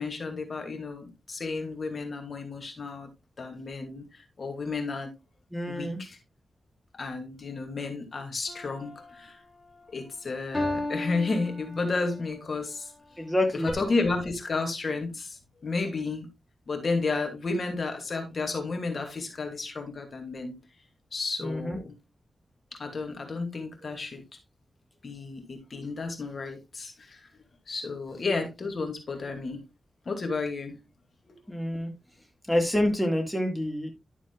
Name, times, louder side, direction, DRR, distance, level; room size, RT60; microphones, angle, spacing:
voice 1, 0.0-3.1 3.4-5.1 5.7-6.2 6.9-9.4 9.9-12.9 13.5-16.3 16.7-20.6 21.1-21.9 22.7-24.2 25.0-27.2 27.7-29.6 30.1-30.8 31.3-31.4, left 3 dB, 55° left, 2.5 m, -32 dB
voice 2, 5.5-6.0 13.2-13.7 21.4-21.8 31.5-31.9 32.5-33.9, left 1 dB, 5° left, 2.0 m, -27 dB
sound 1, 8.5-9.2 10.5-12.2 13.7-13.8, left 2 dB, 20° left, 4.3 m, -33 dB
12.0 x 7.1 x 2.4 m
wide cardioid pair, 95°, 0 cm